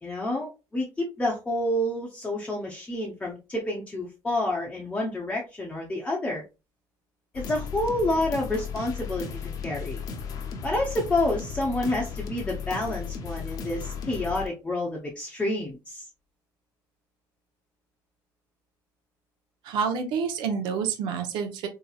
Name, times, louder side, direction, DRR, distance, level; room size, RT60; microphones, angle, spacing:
voice 1, 0.0-6.4 7.3-9.3 9.6-10.0 10.6-16.0, left 1 dB, 15° left, -2 dB, 0.7 m, -29 dB
sound 1, 7.3-14.5, left 6 dB, 50° left, 0.7 m, -35 dB
voice 2, 19.6-21.7, right 6 dB, 75° right, 5 dB, 0.8 m, -28 dB
3.9 x 2.9 x 2.3 m, 0.27 s
cardioid pair, 160°, 8 cm